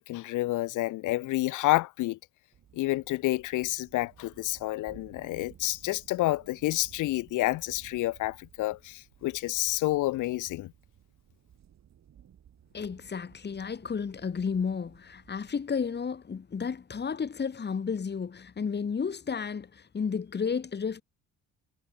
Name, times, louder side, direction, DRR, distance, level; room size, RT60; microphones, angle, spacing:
voice 1, 0.0-2.2 2.7-10.7, left 18 dB, 90° left, 0.9 m, -29 dB
sound 1, 2.5-15.5, right 9 dB, 60° right, 5.9 m, -57 dB
voice 2, 12.7-21.0, left 6 dB, 35° left, 2.0 m, -32 dB
cardioid pair, 90°, 30 cm